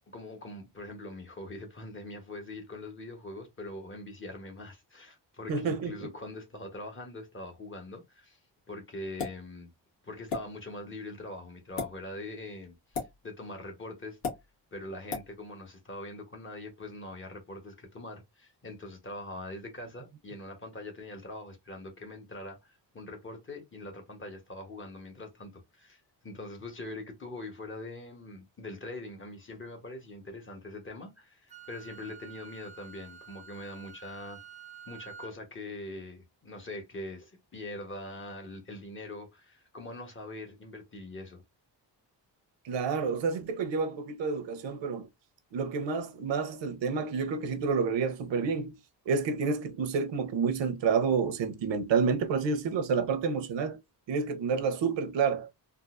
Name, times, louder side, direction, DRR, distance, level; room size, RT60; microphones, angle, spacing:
voice 1, 0.1-8.4 8.7-9.7 10.0-12.7 13.2-14.2 14.7-34.4 34.9-41.4, left 2 dB, 30° left, 1.0 m, -43 dB
voice 2, 5.5-6.1 42.6-45.1 45.5-48.8 49.1-53.8 54.1-55.5, right 5 dB, 80° right, 0.8 m, -29 dB
sound 1, 9.2-9.4 10.3-10.4 11.6-11.9 12.9-13.1 14.2-14.4 15.1-15.3, left 5 dB, 70° left, 1.8 m, -33 dB
Wind instrument woodwind instrument, 31.5-35.4, right 7 dB, 15° right, 0.5 m, -49 dB
3.8 x 2.5 x 2.4 m
wide cardioid pair, 160°, 43 cm